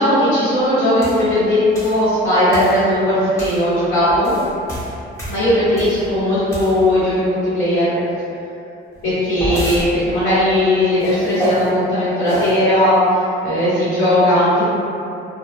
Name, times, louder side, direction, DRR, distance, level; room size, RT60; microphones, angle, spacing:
voice 1, 0.0-4.3 5.3-7.9 9.0-13.0 13.4-14.6, left 1 dB, 80° left, -14 dB, 1.1 m, -17 dB
sound 1, 1.0-1.2 1.7-2.0 2.5-2.8 3.4-3.6 4.1-6.1 6.5-7.0 8.9-9.8 11.0-11.7 12.2-12.6, equal, 15° left, 0.9 m, -26 dB
2.2 x 2.1 x 2.9 m, 2.7 s
cardioid pair, 90°, 20 cm